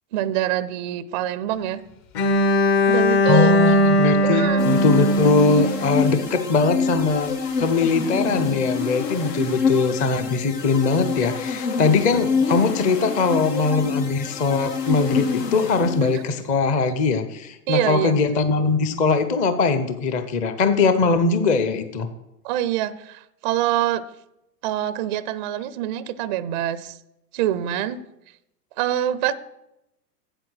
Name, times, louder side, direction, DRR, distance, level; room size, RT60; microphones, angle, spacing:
voice 1, 0.1-1.8 2.9-3.6 4.2-4.7 16.1-16.2 17.7-18.2 22.4-24.0 24.6-26.9 27.3-28.0 28.8-29.3, right 12 dB, 30° right, 16 dB, 0.4 m, -25 dB
Bowed string instrument, 2.1-6.2, left 1 dB, 45° left, 1.6 m, -19 dB
voice 2, 3.3-7.3 7.6-22.1, left 4 dB, 15° left, 10 dB, 0.5 m, -21 dB
sound 1, 4.6-16.4, left 5 dB, 75° left, 1.4 m, -26 dB
7.9 x 7.8 x 6.2 m, 0.87 s
hypercardioid pair, 120°, 49 cm